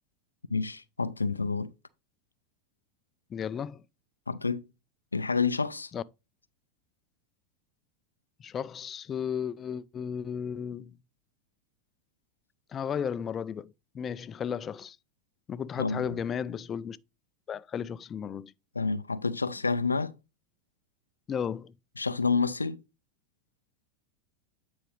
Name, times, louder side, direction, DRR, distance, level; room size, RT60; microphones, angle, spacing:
voice 1, 0.5-1.7 4.3-4.7 5.1-5.9 15.8-16.2 18.8-20.1 22.0-22.8, left 4 dB, 90° left, 0.4 m, -29 dB
voice 2, 3.3-3.8 5.9-6.0 8.4-11.0 12.7-15.0 15.5-17.0 17.5-18.5 21.3-21.7, left 7 dB, 30° left, 0.4 m, -34 dB
8.9 x 5.0 x 3.2 m
figure-of-eight pair, 85°, 0 cm